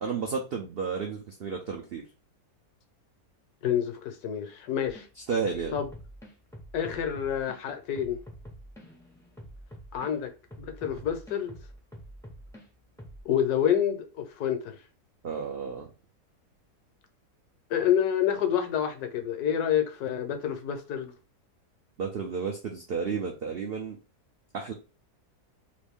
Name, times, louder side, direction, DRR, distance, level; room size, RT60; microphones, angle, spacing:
voice 1, 0.0-2.0 5.3-5.8 15.2-15.9 22.0-24.0 24.5-24.7, right 5 dB, 80° right, 0.5 m, -32 dB
voice 2, 3.6-5.1 5.7-5.9 6.7-8.2 9.9-10.3 10.6-11.6 13.2-14.8 17.7-21.1, left 9 dB, 75° left, 1.2 m, -28 dB
sound 1, 4.8-5.1 5.4-7.6 8.0-10.1 10.5-12.6 13.0-13.2, equal, 5° left, 0.3 m, -46 dB
3.0 x 2.5 x 3.5 m
omnidirectional pair, 1.7 m